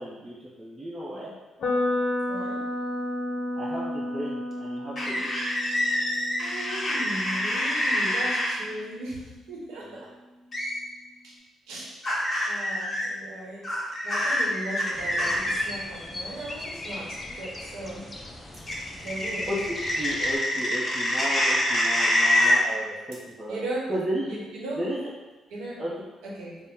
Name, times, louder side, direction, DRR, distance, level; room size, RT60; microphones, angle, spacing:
voice 1, 0.0-1.3 3.6-5.3 19.5-23.6 23.9-24.4 24.8-25.1 25.8-25.9, equal, 20° right, -8 dB, 0.7 m, -33 dB
sound 1, 1.6-9.5, left 1 dB, 60° left, 0.7 m, -32 dB
voice 2, 2.3-2.6 6.4-10.1 11.2-11.3 11.7-18.1 19.0-19.5 23.5-23.9 24.2-24.8 25.5-25.8 26.2-26.6, right 1 dB, 90° right, -4 dB, 1.0 m, -37 dB
sound 2, 5.0-8.5 10.5-10.8 12.0-13.1 13.6-15.6 18.7-22.6, left 1 dB, 35° left, 1.3 m, -26 dB
sound 3, 14.9-20.4, left 2 dB, 20° left, 0.5 m, -39 dB
4.1 x 2.1 x 3.7 m, 1.2 s
cardioid pair, 90°, 0 cm